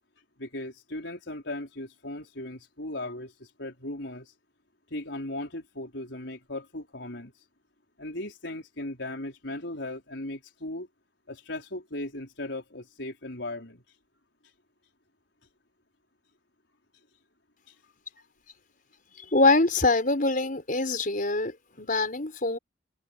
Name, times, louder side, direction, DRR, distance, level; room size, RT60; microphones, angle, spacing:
voice 1, 0.4-4.3 4.9-7.3 8.0-10.9 11.3-13.8 17.7-17.8, left 1 dB, 75° left, 5.0 m, -37 dB
voice 2, 19.3-22.6, left 3 dB, 45° left, 5.8 m, -24 dB
head